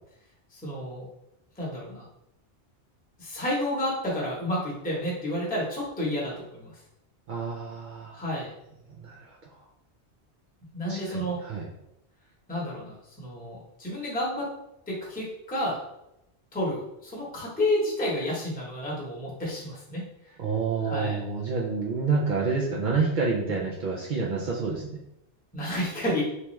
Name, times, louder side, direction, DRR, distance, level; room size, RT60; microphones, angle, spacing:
voice 1, 0.5-1.1 1.6-2.1 3.2-6.8 8.1-8.5 10.7-11.4 12.5-14.5 14.9-15.8 16.5-20.0 20.8-21.2 25.5-26.2, left 1 dB, 10° left, -5 dB, 0.9 m, -30 dB
voice 2, 7.3-8.2 9.0-9.4 10.8-11.7 20.4-25.0, right 4 dB, 55° right, -3 dB, 0.6 m, -28 dB
3.3 x 2.9 x 3.1 m, 0.84 s
omnidirectional pair, 1.1 m